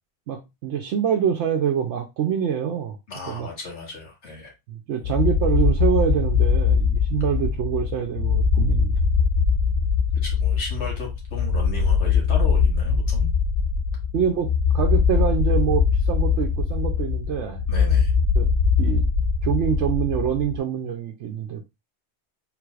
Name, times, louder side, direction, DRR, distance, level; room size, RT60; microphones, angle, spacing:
voice 1, 0.3-3.0 3.3-3.5 4.7-8.9 14.1-17.6 18.3-18.5 18.8-19.0 19.4-21.6, right 8 dB, 85° right, 1.0 m, -25 dB
voice 2, 3.1-4.5 10.2-13.3 17.7-18.1, left 3 dB, 80° left, 1.9 m, -35 dB
sound 1, 5.0-20.6, left 5 dB, 65° left, 1.1 m, -21 dB
4.7 x 3.7 x 2.4 m
omnidirectional pair, 1.2 m